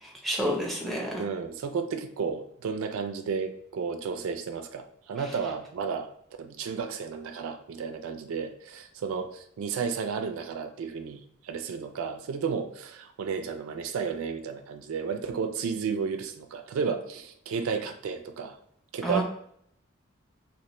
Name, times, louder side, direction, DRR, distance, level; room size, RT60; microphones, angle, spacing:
voice 1, 0.0-1.2 19.0-19.2, equal, ahead, -2 dB, 0.5 m, -29 dB
voice 2, 1.2-6.1 6.4-18.6 18.9-19.2, right 6 dB, 75° right, 7 dB, 0.3 m, -32 dB
3.2 x 2.9 x 2.9 m, 0.70 s
head